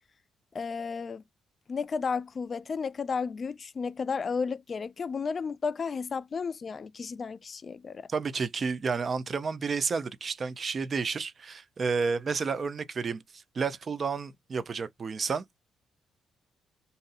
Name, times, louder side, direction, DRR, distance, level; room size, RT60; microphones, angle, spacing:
voice 1, 0.5-1.2 1.7-8.1, left 5 dB, 40° left, 0.3 m, -33 dB
voice 2, 8.1-13.2 13.5-15.6, right 5 dB, 40° right, 0.6 m, -31 dB
2.7 x 2.6 x 4.0 m
cardioid pair, 90°, 0 cm